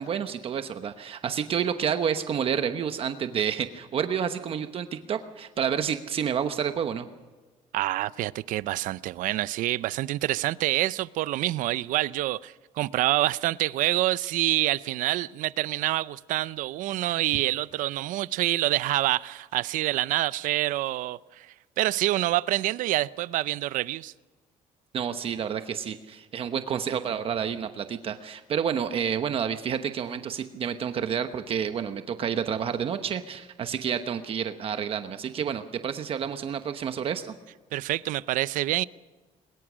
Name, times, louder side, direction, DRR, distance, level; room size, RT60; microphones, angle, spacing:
voice 1, 0.0-7.1 24.9-37.3, right 8 dB, 45° right, 8 dB, 1.0 m, -29 dB
voice 2, 7.7-21.5 21.8-24.1 37.7-38.8, right 16 dB, 75° right, 18 dB, 0.6 m, -27 dB
22.5 x 21.0 x 6.3 m, 1.3 s
cardioid pair, 145°, 14 cm